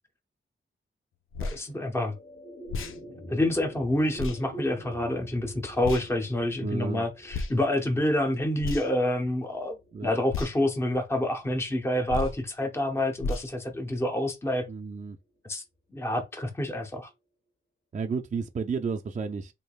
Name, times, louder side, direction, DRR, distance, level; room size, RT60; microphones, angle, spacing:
sound 1, 1.3-1.6 2.7-3.0 4.2-4.4 5.8-6.1 7.3-7.5 8.6-9.0 10.3-10.5 12.1-12.4 13.2-13.5, left 3 dB, 85° left, 0.5 m, -32 dB
voice 1, 1.4-2.1 3.3-9.8 10.0-14.7 15.5-15.6 15.9-17.1, left 1 dB, 10° left, 0.6 m, -28 dB
sound 2, 1.5-12.0, right 1 dB, 40° left, 1.2 m, -46 dB
voice 2, 6.6-7.1 9.9-10.1 14.7-15.2 17.9-19.5, right 5 dB, 35° right, 0.4 m, -32 dB
3.7 x 3.2 x 2.3 m
wide cardioid pair, 95°, 21 cm